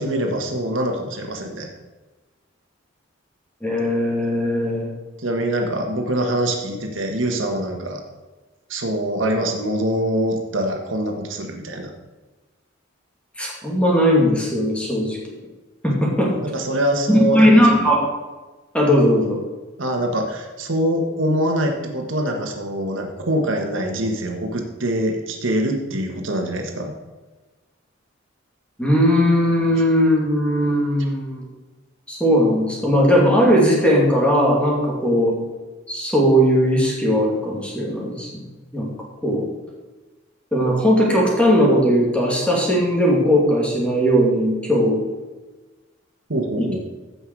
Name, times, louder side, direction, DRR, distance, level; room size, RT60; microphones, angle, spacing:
voice 1, 0.0-1.7 5.2-8.0 8.7-11.9 16.4-17.9 19.8-26.9 46.3-46.8, right 1 dB, 75° right, 3 dB, 1.6 m, -24 dB
voice 2, 3.6-4.9 13.4-15.2 15.8-16.4 17.1-18.1 18.7-19.4 28.8-31.5 32.1-35.4 35.9-38.3 38.7-38.9 39.2-39.5 40.5-45.0 46.6-46.7, equal, 5° left, -3 dB, 2.5 m, -18 dB
15.0 x 5.7 x 4.8 m, 1.2 s
head